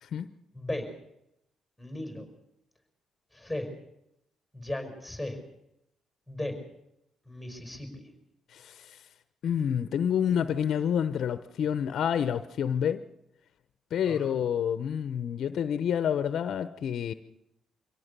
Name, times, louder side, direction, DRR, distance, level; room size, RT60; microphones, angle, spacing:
voice 1, 0.0-0.3 8.5-9.0 9.4-13.0 13.9-17.1, left 8 dB, 65° left, 13 dB, 0.8 m, -28 dB
voice 2, 0.5-0.9 1.8-2.3 3.3-3.7 4.5-5.4 6.3-6.5 7.2-8.1 14.1-14.4, left 1 dB, ahead, 6 dB, 5.2 m, -36 dB
23.5 x 17.0 x 6.8 m, 0.81 s
cardioid pair, 90°, 0 cm